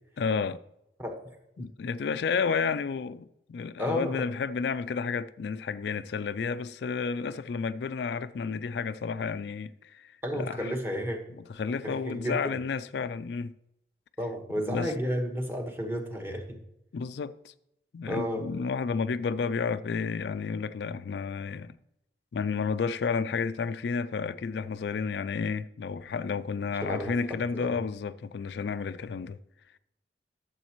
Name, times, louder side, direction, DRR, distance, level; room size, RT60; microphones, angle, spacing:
voice 1, 0.2-0.6 1.6-10.7 11.5-13.5 14.5-14.9 16.9-17.5 17.9-21.7 22.3-29.4, left 5 dB, 70° left, 0.4 m, -31 dB
voice 2, 3.8-4.2 10.2-11.2 11.8-12.4 14.2-16.6 18.0-18.4 26.8-27.7, equal, 15° right, 1.3 m, -32 dB
12.0 x 7.3 x 3.0 m
head